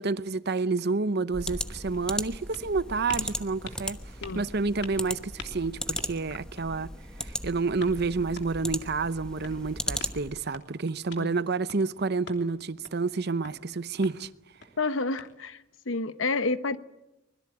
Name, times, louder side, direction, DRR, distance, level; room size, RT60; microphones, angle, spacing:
voice 1, 0.0-4.0 4.3-6.9 7.2-14.3, right 4 dB, 60° right, 0.8 m, -29 dB
sound 1, 1.3-10.5, left 1 dB, 5° left, 1.1 m, -37 dB
sound 2, 1.4-15.8, left 4 dB, 65° left, 3.2 m, -49 dB
voice 2, 14.8-15.6 15.9-16.8, left 3 dB, 90° left, 1.0 m, -29 dB
24.5 x 21.0 x 8.9 m
head